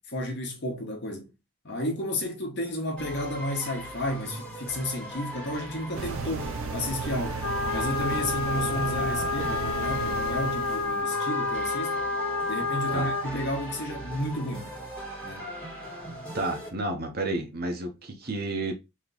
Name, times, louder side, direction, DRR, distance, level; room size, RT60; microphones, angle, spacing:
voice 1, 0.1-1.3 1.6-7.4 7.7-12.1 12.5-14.7 15.2-15.5, left 1 dB, 50° left, 1.0 m, -32 dB
sound 1, 3.0-16.7, equal, 5° left, 1.7 m, -39 dB
sound 2, 5.9-11.0, right 5 dB, 70° right, 0.4 m, -35 dB
sound 3, 7.4-13.2, left 3 dB, 70° left, 0.6 m, -29 dB
voice 2, 16.3-18.7, right 2 dB, 45° right, 0.8 m, -31 dB
3.2 x 2.9 x 3.9 m
head